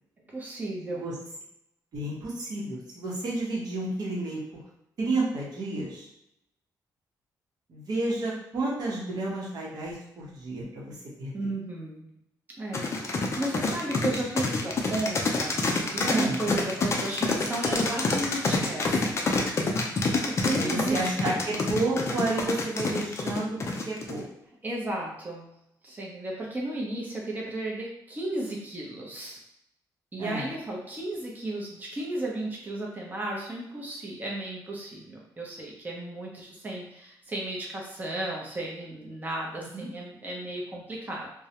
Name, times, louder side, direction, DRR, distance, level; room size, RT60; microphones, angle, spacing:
voice 1, 0.3-1.1 11.3-12.0 12.6-15.6 15.9-19.2 19.6-21.3 24.6-25.5 25.8-29.4 30.1-41.5, right 1 dB, 25° right, -3 dB, 0.6 m, -34 dB
voice 2, 1.9-4.4 5.0-6.1 7.7-11.5 16.1-16.4 20.6-24.3 30.2-30.5 39.6-39.9, right 2 dB, 60° right, -5 dB, 0.9 m, -31 dB
sound 1, 12.7-24.2, left 3 dB, 35° left, 0.4 m, -27 dB
2.3 x 2.1 x 2.8 m, 0.80 s
cardioid pair, 125°, 8 cm